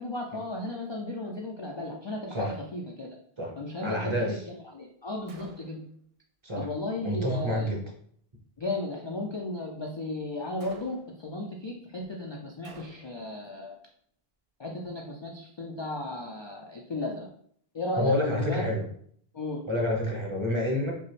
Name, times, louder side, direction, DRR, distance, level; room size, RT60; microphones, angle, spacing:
voice 1, 0.0-3.1 3.6-5.8 6.6-7.7 8.6-13.8 14.6-17.3 17.7-18.6 19.3-19.6, left 2 dB, 45° left, 0 dB, 0.3 m, -35 dB
voice 2, 3.8-4.4 6.4-6.7 7.0-7.8 18.0-18.9 19.7-20.9, left 1 dB, 30° right, -1 dB, 0.8 m, -28 dB
Gunshot gunfire, 5.3-6.0 10.6-11.3 12.6-13.3, right 2 dB, 55° right, 0.4 m, -51 dB
5.2 x 2.0 x 3.1 m, 0.62 s
omnidirectional pair, 1.0 m